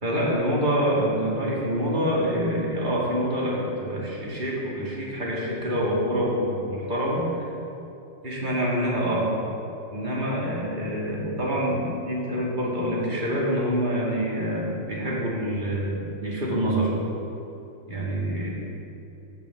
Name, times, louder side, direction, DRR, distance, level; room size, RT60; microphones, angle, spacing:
voice 1, 0.0-7.4 8.2-9.3 9.9-16.9 17.9-18.5, equal, 20° right, -5 dB, 2.0 m, -26 dB
8.4 x 6.7 x 7.2 m, 2.9 s
omnidirectional pair, 2.4 m